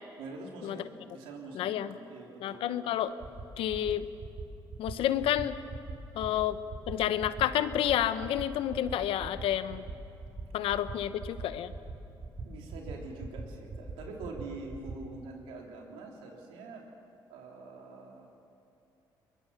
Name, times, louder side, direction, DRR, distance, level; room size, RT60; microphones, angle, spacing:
voice 1, 0.2-2.7 12.4-16.9 17.3-18.4, right 3 dB, 90° right, 0 dB, 3.3 m, -45 dB
voice 2, 1.5-2.0 2.4-3.2 3.6-4.1 4.8-5.6 6.1-6.6 6.9-9.8 10.5-11.7, left 11 dB, 75° left, 12 dB, 0.9 m, -30 dB
sound 1, 2.9-3.0 3.2-3.4 3.7-3.9 4.2-4.4 4.7-4.9 5.2-5.4 5.7-5.9 6.2-6.4 6.7-6.9 7.2-7.4 7.7-7.9 8.2-8.4 8.7-8.9 9.2-9.4 9.7-9.9 10.2-10.4 10.7-10.9 11.2-11.4 11.7-11.9 12.2-12.4 12.7-12.9 13.2-13.4 13.7-13.9 14.2-14.4 14.7-14.9, right 4 dB, 55° right, 4.6 m, -40 dB
22.5 x 21.0 x 7.0 m, 2.8 s
supercardioid pair, 70°, 9 cm